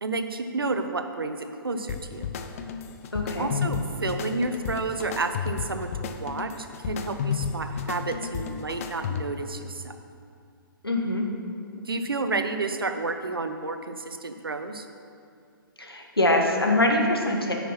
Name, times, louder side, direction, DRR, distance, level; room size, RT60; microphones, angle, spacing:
voice 1, 0.0-2.3 3.4-10.0 11.8-14.9, right 3 dB, 75° right, 7 dB, 0.7 m, -31 dB
sound 1, 1.9-9.5, left 7 dB, 40° left, 0.5 m, -32 dB
voice 2, 3.1-3.5 10.8-11.3 15.8-17.5, left 1 dB, 90° left, 1 dB, 1.4 m, -23 dB
8.4 x 5.8 x 5.7 m, 2.4 s
figure-of-eight pair, 125°, 12 cm